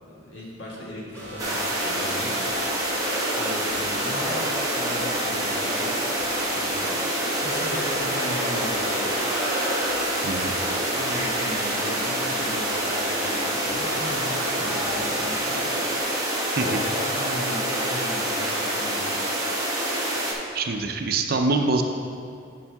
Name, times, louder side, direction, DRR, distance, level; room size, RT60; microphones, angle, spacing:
voice 1, 0.0-2.3 3.4-5.9 6.5-9.1 10.9-15.6 16.6-19.1, equal, 70° left, -5 dB, 1.9 m, -37 dB
sound 1, 1.1-16.0, equal, 10° left, 1.7 m, -37 dB
sound 2, 1.4-20.3, right 1 dB, 20° right, 1.3 m, -26 dB
voice 2, 10.2-10.5 16.6-16.8 19.8-20.1 20.5-21.8, right 3 dB, 50° right, 5 dB, 0.6 m, -25 dB
9.8 x 5.5 x 3.5 m, 2.4 s
head